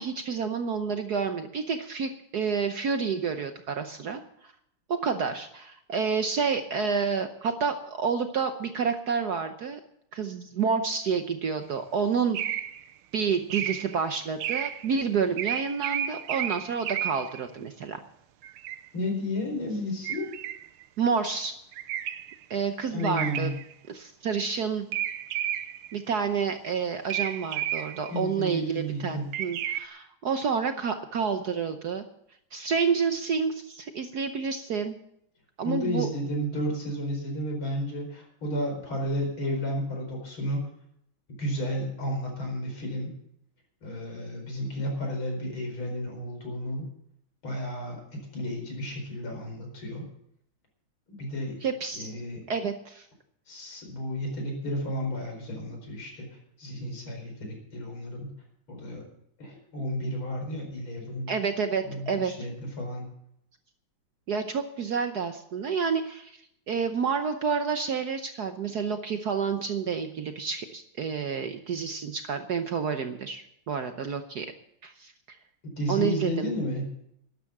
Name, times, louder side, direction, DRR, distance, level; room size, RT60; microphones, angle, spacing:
voice 1, 0.0-4.5 4.9-9.8 10.1-12.4 13.1-18.0 21.0-21.5 22.5-23.5 23.9-24.9 25.9-32.0 32.5-35.0 35.6-36.1 51.6-52.1 52.5-53.1 61.3-62.3 64.3-74.5 74.8-75.1 75.9-76.5, right 6 dB, 60° right, 8 dB, 1.2 m, -29 dB
sound 1, 12.3-12.9 13.5-14.0 14.4-14.9 15.4-17.4 18.4-18.9 20.0-20.8 21.7-22.4 23.0-23.7 24.9-26.0 27.1-28.2 29.3-29.8, right 11 dB, 80° right, 1.6 m, -32 dB
voice 2, 18.9-20.3 22.9-23.5 28.1-29.3 35.6-40.7 41.3-43.1 43.8-46.9 47.4-50.1 51.2-51.6 51.9-52.4 53.5-58.3 58.7-59.1 59.4-61.3 61.8-63.1 75.6-76.9, equal, 70° left, 2 dB, 5.5 m, -32 dB
12.5 x 11.5 x 7.2 m, 0.74 s
omnidirectional pair, 2.4 m